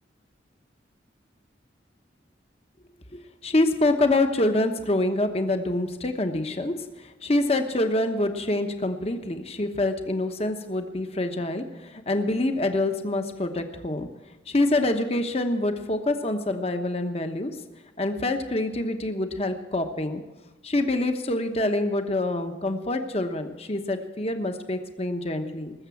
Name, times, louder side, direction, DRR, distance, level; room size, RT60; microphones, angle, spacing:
voice 1, 3.1-6.7 7.0-14.1 14.5-17.5 18.0-20.2 20.6-25.7, left 2 dB, 35° left, 7 dB, 1.0 m, -26 dB
19.5 x 7.4 x 7.1 m, 1.1 s
head